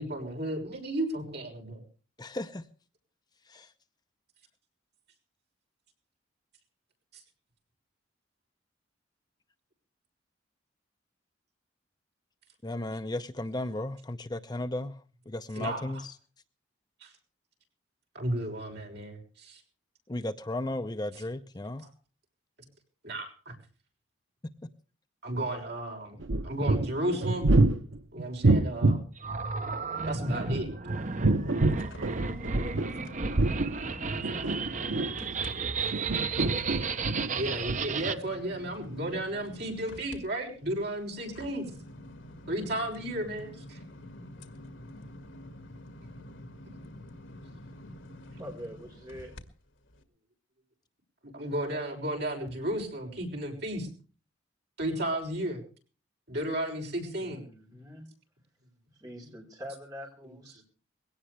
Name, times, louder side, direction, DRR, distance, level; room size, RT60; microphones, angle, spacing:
voice 1, 0.0-1.8 7.1-7.2 15.6-15.9 17.0-17.1 18.1-19.6 23.0-23.5 25.2-27.5 28.1-29.0 30.0-30.7 37.3-41.7 42.5-43.8 51.3-53.9 54.8-55.6 56.3-57.4, right 1 dB, 55° right, 2 dB, 6.4 m, -33 dB
voice 2, 2.2-2.6 3.5-3.7 12.6-16.2 20.1-21.9 24.6-24.7, left 1 dB, 20° left, 10 dB, 0.7 m, -35 dB
sound 1, 26.2-29.1 30.3-32.9 33.2-35.4 35.9-37.3 37.7-37.8, right 2 dB, 75° right, 0.9 m, -26 dB
sound 2, 29.2-38.2, right 5 dB, 40° right, 0.8 m, -34 dB
sound 3, 30.9-35.5 35.9-49.4 49.9-50.0, left 1 dB, 80° left, 2.0 m, -48 dB
voice 3, 35.3-36.4 48.3-49.4 57.1-58.1 58.9-60.6, equal, 20° right, 1 dB, 5.0 m, -45 dB
21.5 x 17.5 x 3.3 m, 0.38 s
head